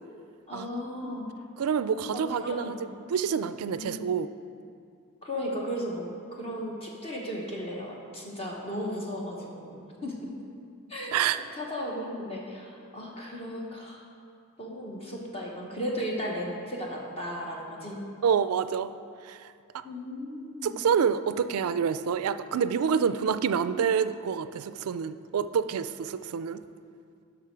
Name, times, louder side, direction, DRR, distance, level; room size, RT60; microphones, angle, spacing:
voice 1, 0.5-1.3 2.1-2.8 3.7-4.1 5.2-10.3 10.9-14.0 14.6-18.0 19.8-20.7, equal, 25° left, -2 dB, 1.1 m, -35 dB
voice 2, 1.6-2.7 3.1-4.3 11.1-11.4 18.2-18.9 19.2-19.8 20.6-26.6, right 7 dB, 90° right, 13 dB, 0.4 m, -27 dB
11.0 x 6.2 x 4.6 m, 2.4 s
head